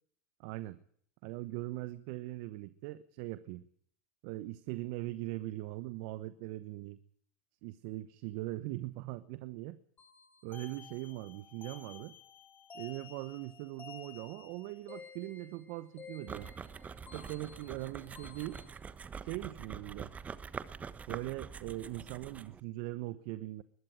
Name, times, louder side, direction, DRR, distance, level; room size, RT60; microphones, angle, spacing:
voice 1, 0.4-0.8 1.2-3.6 4.2-7.0 7.6-9.8 10.4-12.1 12.7-16.5 17.1-18.6 19.2-20.1 21.1-23.6, right 18 dB, 60° right, 15 dB, 1.0 m, -41 dB
sound 1, 10.0-18.7, left 5 dB, 25° left, 4.1 m, -53 dB
sound 2, 16.3-22.6, right 6 dB, 20° right, 1.2 m, -45 dB
21.0 x 13.5 x 9.2 m, 0.62 s
hypercardioid pair, 100°, 7 cm